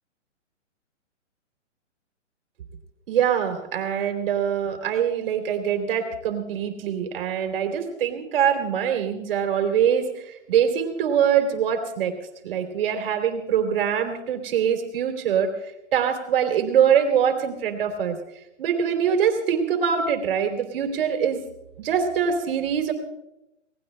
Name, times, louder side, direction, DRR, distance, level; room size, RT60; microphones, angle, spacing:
voice 1, 3.1-12.1 12.4-15.5 15.9-18.1 18.6-21.4 21.8-22.9, right 8 dB, 50° right, 5 dB, 3.2 m, -23 dB
29.0 x 19.0 x 2.2 m, 0.91 s
hypercardioid pair, 155°, 37 cm